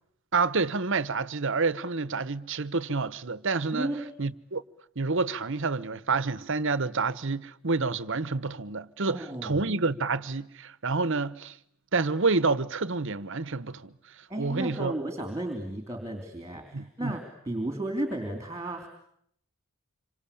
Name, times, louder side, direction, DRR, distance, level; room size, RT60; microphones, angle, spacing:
voice 1, 0.3-3.9 4.2-4.6 5.0-11.6 11.9-13.9 14.4-14.9 16.7-17.2, right 4 dB, 60° right, 1.1 m, -28 dB
voice 2, 3.7-4.1 9.1-9.6 14.3-18.9, right 1 dB, 15° right, 3.2 m, -34 dB
27.5 x 25.5 x 8.5 m
head